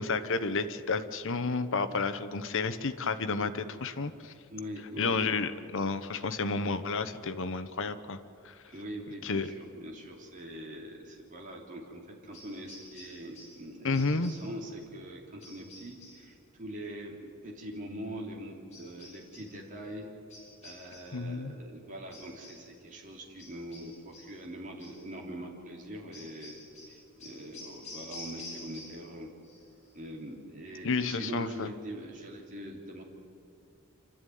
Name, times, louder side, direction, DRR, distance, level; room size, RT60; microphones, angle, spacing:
voice 1, 0.0-4.3 5.0-8.2 8.4-8.5 9.2-9.5 13.8-14.3 21.1-21.5 30.8-31.7, left 4 dB, 65° left, 11 dB, 1.1 m, -31 dB
voice 2, 4.5-5.2 8.6-20.1 20.6-26.6 26.9-29.3 29.9-33.0, right 1 dB, 40° right, -2 dB, 3.1 m, -43 dB
sound 1, 12.3-13.7 13.9-14.6 15.4-16.3 18.7-19.6 20.3-21.2 22.1-22.7 23.4-24.4 24.8-25.1 26.1-29.2 29.4-29.9, left 2 dB, 35° left, 6.6 m, -49 dB
27.5 x 13.0 x 9.3 m, 2.7 s
head